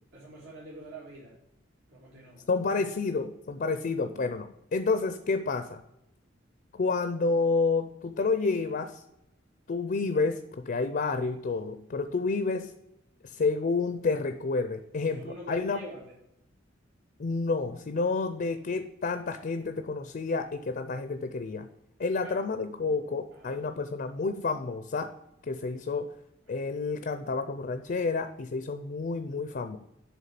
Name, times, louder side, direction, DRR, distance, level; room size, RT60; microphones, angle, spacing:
voice 1, 0.1-1.3 1.9-2.4 15.0-16.0 22.2-22.4 23.3-23.6, right 1 dB, 75° right, -5 dB, 1.9 m, -45 dB
voice 2, 2.5-5.8 6.7-9.0 9.7-12.7 13.2-15.8 17.2-21.7 22.0-25.1 25.5-26.1 26.5-29.8, left 4 dB, 45° left, 8 dB, 0.4 m, -29 dB
7.4 x 3.5 x 5.7 m, 0.86 s
head